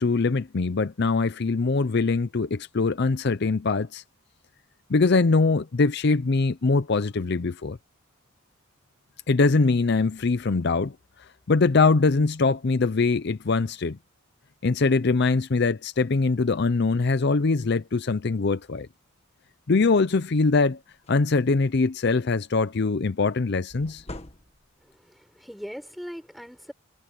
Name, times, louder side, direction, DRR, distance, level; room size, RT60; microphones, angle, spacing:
voice 1, 0.0-4.0 4.9-7.8 9.3-11.0 11.5-14.0 14.6-18.9 19.7-20.8 21.1-24.0, left 3 dB, 50° left, 0.5 m, -22 dB
sound 1, 20.5-20.6 20.9-22.0 23.7-24.9, left 1 dB, 30° left, 1.6 m, -44 dB
voice 2, 25.0-26.7, equal, ahead, 4.6 m, -40 dB
head